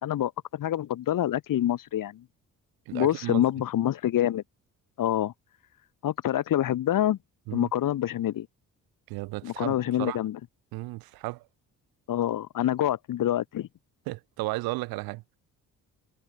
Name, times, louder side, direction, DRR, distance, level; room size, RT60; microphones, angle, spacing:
voice 1, 0.0-2.2 2.9-4.4 5.0-5.3 6.0-7.2 7.5-8.5 9.4-10.4 12.1-13.7, left 12 dB, 65° left, 1.8 m, -26 dB
voice 2, 2.9-3.5 7.5-7.7 9.1-10.2 10.7-11.4 14.1-15.2, right 21 dB, 90° right, 2.6 m, -34 dB
supercardioid pair, 65°, 35 cm